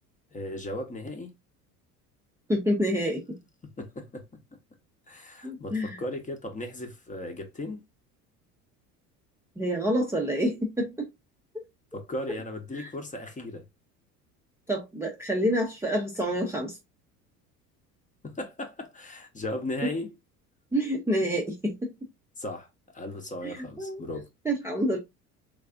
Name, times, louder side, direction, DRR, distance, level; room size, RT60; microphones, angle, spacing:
voice 1, 0.3-1.3 3.8-4.4 5.1-7.8 11.9-13.6 18.2-20.1 22.4-22.7 22.9-24.3, left 1 dB, 15° left, 0.9 m, -36 dB
voice 2, 2.5-3.4 5.4-6.0 9.6-11.1 12.7-12.9 14.7-16.8 19.8-19.9 20.7-21.9 23.4-24.0 24.4-25.0, equal, 5° right, 0.6 m, -28 dB
3.6 x 3.1 x 2.5 m
figure-of-eight pair, 65°, 47 cm